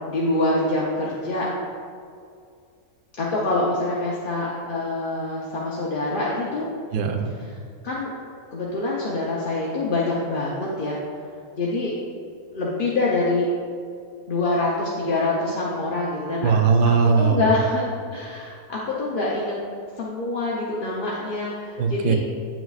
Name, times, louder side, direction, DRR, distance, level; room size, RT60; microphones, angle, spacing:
voice 1, 0.1-1.5 3.1-6.7 7.4-7.6 7.8-8.1 8.5-11.0 11.6-11.9 12.5-13.5 14.3-16.5 16.8-19.6 20.0-22.1, left 2 dB, 50° left, -5 dB, 0.7 m, -25 dB
voice 2, 6.9-7.3 16.4-17.5 21.8-22.1, right 5 dB, 55° right, 3 dB, 0.5 m, -19 dB
9.0 x 6.0 x 2.4 m, 2.3 s
omnidirectional pair, 1.6 m